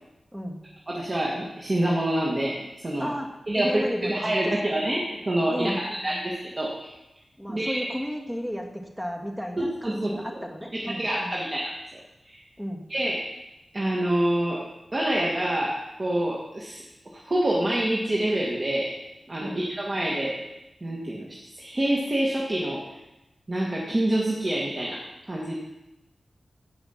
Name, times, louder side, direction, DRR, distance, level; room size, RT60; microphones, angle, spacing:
voice 1, 0.9-3.1 3.5-7.0 7.5-7.8 9.6-10.2 10.7-11.7 12.2-12.4 12.9-13.2 13.7-14.6 14.9-16.8 17.1-18.9 19.3-20.4 20.8-22.8 23.5-25.6, right 1 dB, 30° right, -3 dB, 1.9 m, -27 dB
voice 2, 3.0-4.6 5.5-6.2 7.4-11.4 12.6-12.9 19.4-19.6, equal, 5° right, 2 dB, 1.8 m, -34 dB
16.0 x 5.7 x 5.8 m, 0.97 s
wide cardioid pair, 95°, 0 cm